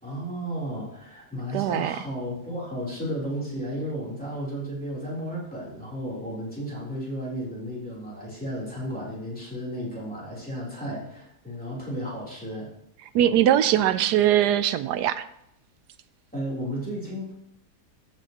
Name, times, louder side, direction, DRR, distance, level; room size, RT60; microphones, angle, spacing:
voice 1, 0.0-12.7 16.3-17.4, equal, 5° left, -7 dB, 3.3 m, -33 dB
voice 2, 1.5-2.0 13.1-15.2, right 11 dB, 85° right, 13 dB, 1.2 m, -21 dB
14.0 x 7.2 x 3.0 m, 0.77 s
omnidirectional pair, 1.7 m